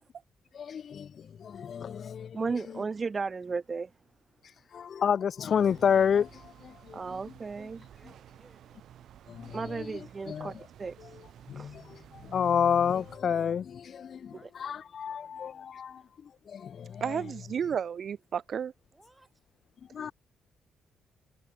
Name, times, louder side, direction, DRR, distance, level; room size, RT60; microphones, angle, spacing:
voice 1, 0.5-2.8 4.7-7.2 7.6-7.7 9.3-10.7 11.0-11.2 11.5-17.2 19.9-20.1, left 7 dB, 55° left, 0.4 m, -30 dB
voice 2, 2.3-3.9 6.9-7.8 9.5-10.5 10.8-11.2 11.6-11.8, right 4 dB, 30° right, 0.6 m, -34 dB
sound 1, 5.6-13.2, right 10 dB, 70° right, 2.9 m, -53 dB
voice 3, 7.9-8.8 14.3-16.2 18.9-19.5, right 2 dB, 15° right, 6.7 m, -64 dB
voice 4, 17.0-18.7, right 7 dB, 55° right, 0.9 m, -32 dB
cardioid pair, 100°, 0 cm